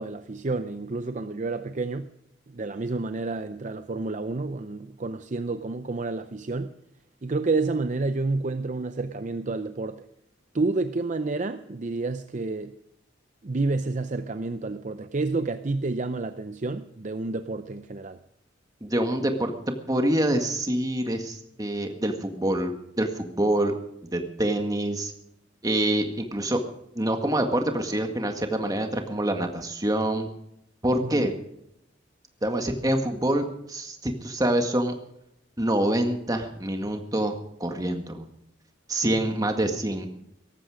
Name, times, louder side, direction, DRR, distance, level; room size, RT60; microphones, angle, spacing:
voice 1, 0.0-2.1 2.5-6.7 7.2-10.0 10.5-12.8 13.4-18.2 31.0-31.3 39.2-39.4, right 3 dB, 40° right, 10 dB, 0.6 m, -29 dB
voice 2, 18.8-19.5 19.9-22.7 23.0-23.7 24.1-25.1 25.6-26.6 27.0-30.3 30.8-31.3 32.4-35.0 35.6-37.3 37.6-38.3 38.9-40.1, right 1 dB, 20° right, 5 dB, 1.9 m, -26 dB
17.5 x 14.5 x 5.0 m, 0.79 s
head